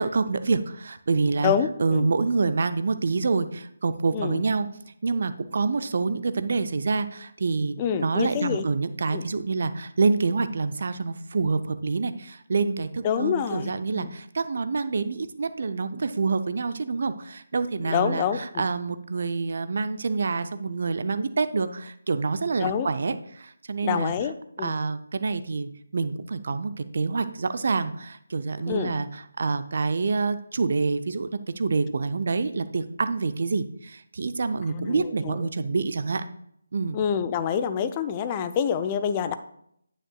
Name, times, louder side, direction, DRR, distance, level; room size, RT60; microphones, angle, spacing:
voice 1, 0.0-1.5 1.8-4.7 5.0-7.8 8.0-24.1 24.6-36.2 36.7-37.0, right 4 dB, 45° right, 11 dB, 0.6 m, -27 dB
voice 2, 1.4-2.1 4.1-4.4 7.8-8.6 9.1-9.2 13.0-14.1 17.8-18.6 22.6-22.9 23.8-24.8 28.7-28.9 34.7-35.4 36.9-39.3, left 8 dB, 20° left, 11 dB, 0.5 m, -27 dB
9.9 x 8.9 x 2.3 m, 0.71 s
figure-of-eight pair, 150°, 0 cm